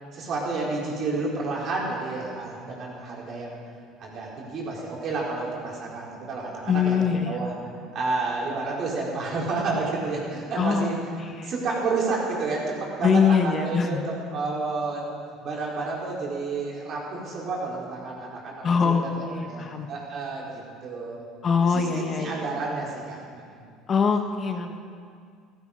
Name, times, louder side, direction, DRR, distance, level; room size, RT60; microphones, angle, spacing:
voice 1, 0.1-3.6 4.0-7.5 7.9-10.9 11.4-15.0 15.4-21.2 21.6-23.6, right 3 dB, 50° right, -3 dB, 4.4 m, -30 dB
voice 2, 6.7-7.4 10.6-11.5 13.0-14.0 18.6-19.9 21.4-22.3 23.9-24.8, left 6 dB, 40° left, 6 dB, 1.3 m, -23 dB
14.0 x 14.0 x 5.1 m, 2.2 s
hypercardioid pair, 70°, 0 cm